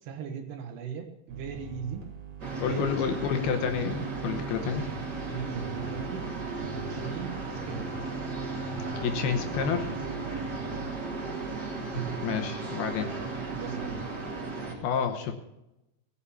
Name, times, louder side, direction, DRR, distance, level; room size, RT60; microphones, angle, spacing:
voice 1, 0.0-2.1 2.7-3.2 5.3-7.9 10.3-10.5 13.6-14.1, right 7 dB, 75° right, 6 dB, 3.3 m, -39 dB
sound 1, 1.3-11.6, right 3 dB, 50° right, 3.5 m, -44 dB
sound 2, 2.4-14.7, right 4 dB, 30° right, 2.5 m, -35 dB
voice 2, 2.6-4.9 9.0-9.9 12.2-13.1 14.8-15.3, left 7 dB, 75° left, 6 dB, 2.7 m, -29 dB
17.5 x 7.1 x 7.1 m, 0.91 s
omnidirectional pair, 5.0 m